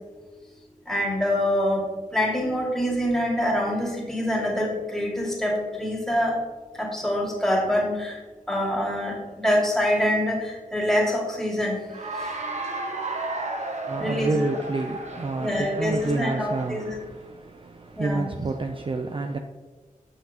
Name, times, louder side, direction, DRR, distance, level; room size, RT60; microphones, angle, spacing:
voice 1, 0.9-1.8 2.1-6.4 6.8-8.2 8.5-11.7 14.0-14.5 15.4-17.0 18.0-18.2, left 1 dB, 5° left, -2 dB, 2.1 m, -25 dB
Cheering / Applause, 11.8-17.0, right 2 dB, 55° right, 1.0 m, -34 dB
voice 2, 13.9-17.0 18.0-19.4, right 3 dB, 40° right, 4 dB, 0.5 m, -28 dB
7.9 x 5.8 x 2.9 m, 1.3 s
cardioid pair, 55°, 14 cm